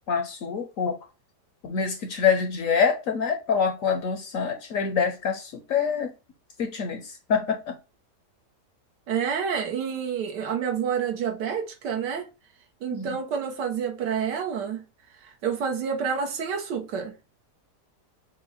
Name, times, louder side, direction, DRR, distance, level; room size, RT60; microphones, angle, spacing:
voice 1, 0.1-1.0 1.6-6.1 6.6-7.8 12.9-13.2, left 6 dB, 65° left, 0.9 m, -26 dB
voice 2, 9.1-12.3 12.8-14.8 15.2-17.1, right 7 dB, 80° right, 1.6 m, -28 dB
6.1 x 2.2 x 4.1 m
omnidirectional pair, 1.8 m